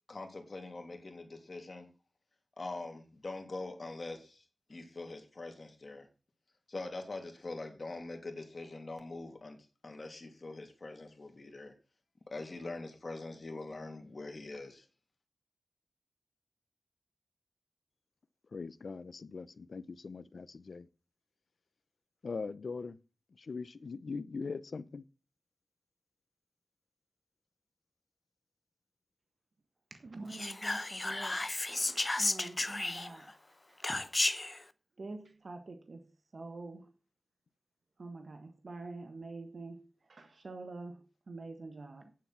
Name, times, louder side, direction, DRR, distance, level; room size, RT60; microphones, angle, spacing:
voice 1, 0.1-1.9 2.6-4.4 4.7-6.1 6.7-11.7 12.3-14.8, left 2 dB, 50° left, 2.7 m, -43 dB
voice 2, 18.5-20.9 22.2-23.0 23.3-25.0, left 4 dB, 80° left, 0.7 m, -41 dB
voice 3, 29.9-33.4 33.7-34.1 34.5-34.6 35.0-36.1 36.3-36.9 38.0-42.1, right 3 dB, 70° right, 1.4 m, -46 dB
Whispering, 30.3-33.3 33.8-34.6, left 2 dB, 30° left, 0.7 m, -33 dB
9.5 x 7.6 x 5.9 m
wide cardioid pair, 75°, 0 cm